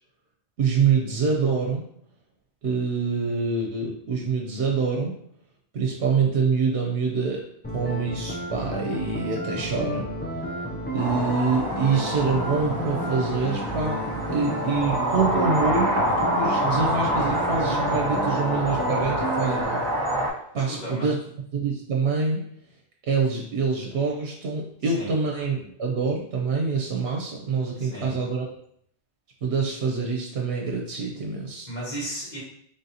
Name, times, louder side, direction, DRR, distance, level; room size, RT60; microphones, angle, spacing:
voice 1, 0.6-1.8 2.6-5.2 5.7-7.4 7.7-10.1 10.9-14.0 14.3-16.0 16.3-19.8 20.5-21.2 21.5-22.4 23.1-28.5 29.4-31.7, right 5 dB, 75° right, 0 dB, 0.9 m, -25 dB
sound 1, 7.6-19.6, equal, 15° left, 0.3 m, -32 dB
sound 2, 11.0-20.3, right 1 dB, 50° right, 1.2 m, -26 dB
voice 2, 20.6-21.1 24.9-25.1 27.8-28.2 31.7-32.4, right 1 dB, 40° left, -6 dB, 1.6 m, -34 dB
3.9 x 3.6 x 2.7 m, 0.67 s
omnidirectional pair, 1.1 m